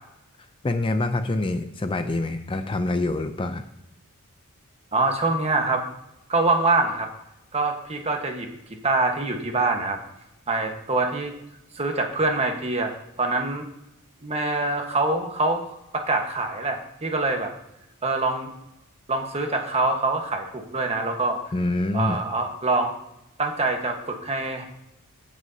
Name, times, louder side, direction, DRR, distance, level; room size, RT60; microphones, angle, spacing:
voice 1, 0.6-3.6 21.5-22.2, left 2 dB, 25° left, 8 dB, 0.5 m, -26 dB
voice 2, 4.9-5.8 6.3-7.1 7.5-8.5 8.8-10.0 10.5-11.3 11.7-12.9 13.2-13.7 14.2-15.7 15.9-17.5 18.0-18.5 19.1-21.4 21.9-22.9 23.4-24.6, right 3 dB, 30° right, 3 dB, 1.3 m, -24 dB
16.5 x 6.2 x 2.8 m, 0.86 s
head